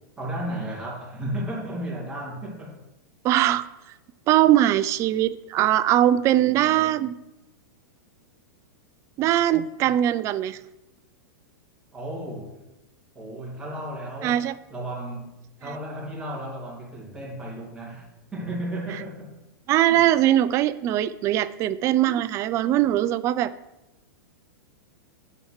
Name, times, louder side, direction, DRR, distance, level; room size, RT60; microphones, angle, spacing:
voice 1, 0.2-2.8 11.9-12.6 13.1-15.3 15.6-19.3 19.9-20.1, right 1 dB, 10° right, -4 dB, 2.3 m, -34 dB
voice 2, 3.2-3.6 4.3-7.2 9.2-10.6 14.2-14.5 19.7-23.5, right 12 dB, 25° right, 15 dB, 0.3 m, -21 dB
9.0 x 4.3 x 5.7 m, 0.92 s
supercardioid pair, 150°, 11 cm